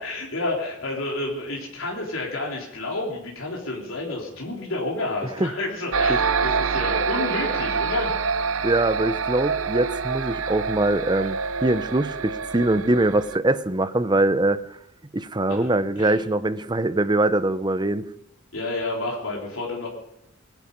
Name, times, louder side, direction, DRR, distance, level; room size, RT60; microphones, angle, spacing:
voice 1, 0.0-8.1 15.5-15.7 16.0-16.2 18.5-19.9, left 2 dB, 85° left, -2 dB, 3.6 m, -30 dB
sound 1, 5.9-13.4, right 5 dB, 80° right, 0.7 m, -26 dB
voice 2, 8.6-14.6 15.1-18.1, right 2 dB, 20° right, 12 dB, 0.8 m, -22 dB
21.5 x 11.0 x 5.4 m, 0.81 s
head